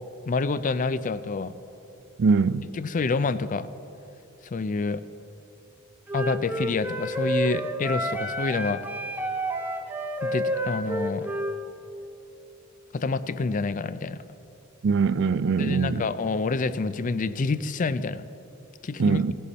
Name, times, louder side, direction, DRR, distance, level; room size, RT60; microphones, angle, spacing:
voice 1, 0.3-1.5 2.7-3.7 4.5-5.0 6.1-8.8 10.2-11.3 12.9-14.2 15.6-18.2 18.8-19.2, left 4 dB, 40° left, 0.4 m, -27 dB
voice 2, 2.2-2.6 14.8-16.1 19.0-19.3, right 5 dB, 60° right, 0.4 m, -22 dB
Wind instrument woodwind instrument, 6.1-11.6, right 1 dB, 10° right, 0.8 m, -29 dB
17.0 x 11.0 x 4.2 m
head